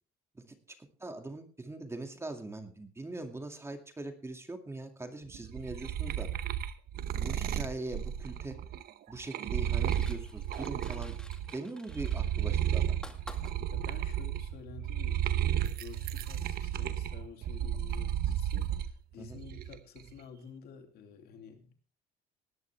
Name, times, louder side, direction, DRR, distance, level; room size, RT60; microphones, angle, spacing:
voice 1, 1.0-6.3 7.1-8.6 9.1-11.2 11.5-13.2 19.2-19.4, right 2 dB, 15° right, 5 dB, 2.3 m, -41 dB
sound 1, 5.3-11.6 11.9-18.9 19.3-20.0, right 10 dB, 65° right, 1.0 m, -33 dB
sound 2, 9.8-14.0 15.4-15.5, left 1 dB, 5° left, 2.0 m, -51 dB
voice 2, 13.7-21.7, left 5 dB, 70° left, 5 dB, 2.9 m, -50 dB
19.0 x 11.0 x 3.4 m, 0.38 s
cardioid pair, 110°, 17 cm